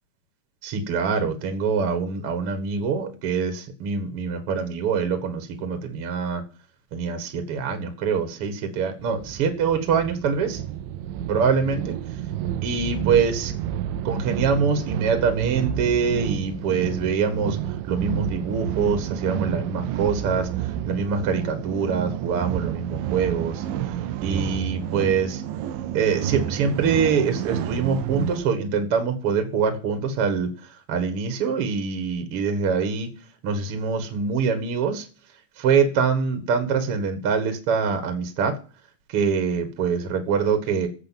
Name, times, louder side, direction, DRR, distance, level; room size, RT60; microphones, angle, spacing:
voice 1, 0.6-6.4 6.9-10.6 11.3-12.0 12.6-13.5 14.0-17.6 17.9-20.5 20.9-23.6 24.2-25.4 25.9-30.5 30.9-33.1 33.4-35.0 35.6-38.6 39.1-40.9, right 5 dB, 50° right, 7 dB, 2.2 m, -24 dB
sound 1, 9.0-28.5, right 11 dB, 80° right, 2.4 m, -30 dB
12.0 x 7.8 x 7.5 m, 0.38 s
omnidirectional pair, 4.0 m